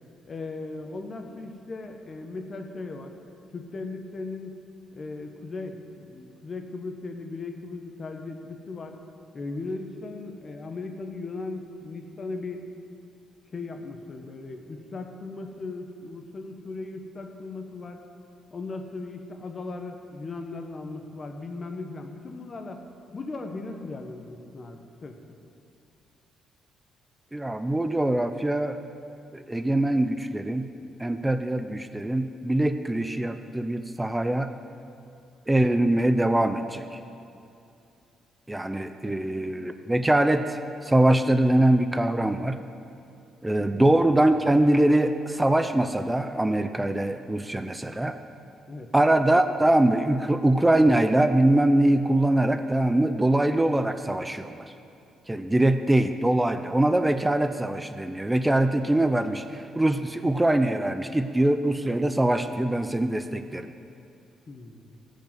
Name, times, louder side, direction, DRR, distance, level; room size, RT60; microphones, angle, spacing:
voice 1, 0.3-3.1 3.5-4.6 4.9-9.0 9.3-12.6 13.5-18.0 18.5-22.8 23.1-25.2 39.0-39.2 43.6-43.9 48.7-48.9 64.5-64.8, left 3 dB, 40° left, 4 dB, 1.4 m, -37 dB
voice 2, 27.3-28.8 29.3-30.7 31.0-34.5 35.5-36.8 38.5-42.6 43.4-48.2 48.9-54.7 55.3-63.7, right 1 dB, 10° right, 9 dB, 0.6 m, -23 dB
16.5 x 5.5 x 7.7 m, 2.7 s
cardioid pair, 90°, 0 cm